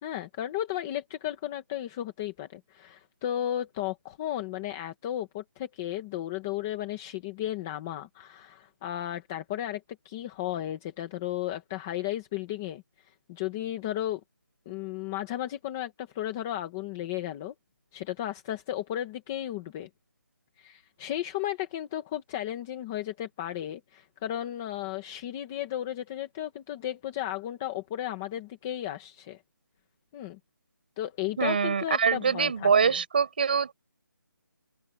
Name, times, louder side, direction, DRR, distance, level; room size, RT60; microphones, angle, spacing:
voice 1, 0.0-14.2 14.7-17.5 17.9-19.9 20.6-29.4 30.1-30.4 31.0-33.0, left 12 dB, 5° left, 0.6 m, -34 dB
voice 2, 31.4-33.7, right 6 dB, 25° right, 4.2 m, -24 dB
open air
hypercardioid pair, 180°, 11 cm